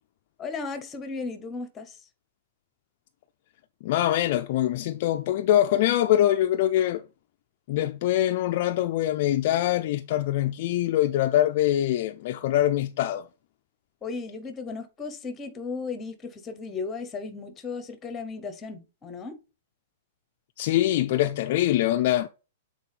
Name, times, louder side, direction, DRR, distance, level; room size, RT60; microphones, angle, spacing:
voice 1, 0.4-2.0 14.0-19.4, left 4 dB, 10° left, 0.7 m, -35 dB
voice 2, 3.8-7.0 7.7-13.3 20.6-22.3, left 13 dB, 35° left, 0.3 m, -23 dB
8.3 x 3.9 x 3.2 m
hypercardioid pair, 180°, 0 cm